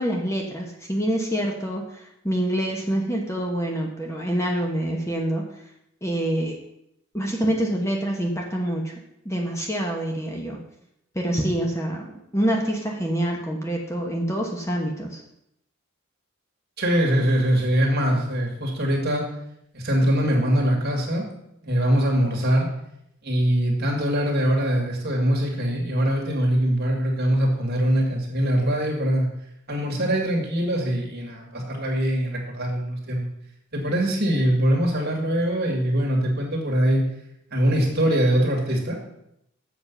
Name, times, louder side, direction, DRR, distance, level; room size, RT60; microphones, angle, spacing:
voice 1, 0.0-5.4 6.0-6.6 7.1-8.9 9.2-10.6 11.1-15.2, right 1 dB, 15° left, 0 dB, 1.1 m, -26 dB
voice 2, 16.8-19.2 19.7-21.3 21.6-22.7 23.2-29.3 29.7-33.3 33.7-37.0 37.5-39.0, equal, 45° right, 0 dB, 2.2 m, -22 dB
7.4 x 7.3 x 5.5 m, 0.78 s
head